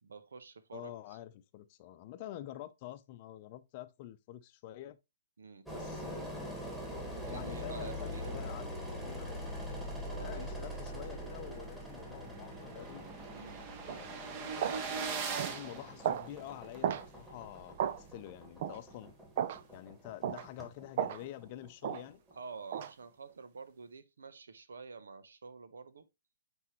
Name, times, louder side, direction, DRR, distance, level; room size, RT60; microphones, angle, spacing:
voice 1, 0.0-0.9 5.4-5.7 7.3-8.4 10.0-10.5 13.3-13.6 22.3-26.1, right 5 dB, 75° right, 0.9 m, -48 dB
voice 2, 0.7-5.0 5.7-6.8 7.3-8.7 9.1-9.5 10.2-13.1 13.9-15.1 15.5-19.1 19.7-22.2, left 13 dB, 40° left, 0.7 m, -48 dB
Engine, 5.7-22.6, equal, 5° right, 1.9 m, -44 dB
sound 1, 11.2-11.3 11.6-11.7 11.9-16.7, right 5 dB, 30° right, 1.2 m, -41 dB
sound 2, 13.9-14.0 14.6-14.8 15.4-15.6 16.0-16.3 16.8-17.1 17.8-18.0 18.6-18.8 19.4-19.6 20.2-20.4 21.0-21.2 21.8-22.0 22.7-22.9, right 9 dB, 50° right, 0.5 m, -34 dB
9.3 x 3.6 x 3.0 m
hypercardioid pair, 130°, 0 cm